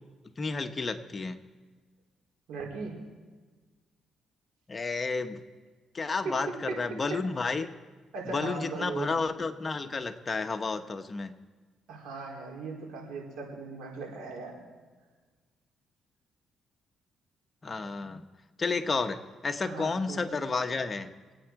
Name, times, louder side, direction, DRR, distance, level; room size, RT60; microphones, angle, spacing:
voice 1, 0.4-1.4 4.7-5.4 5.9-7.7 8.3-11.4 17.6-18.3 18.6-21.2, left 4 dB, 30° left, 8 dB, 1.0 m, -31 dB
voice 2, 2.5-3.0 6.2-6.8 7.1-7.2 8.1-9.2 11.9-14.5 19.6-20.2, right 4 dB, 85° right, -2 dB, 4.3 m, -38 dB
25.5 x 9.0 x 4.7 m, 1.4 s
cardioid pair, 90°, 0 cm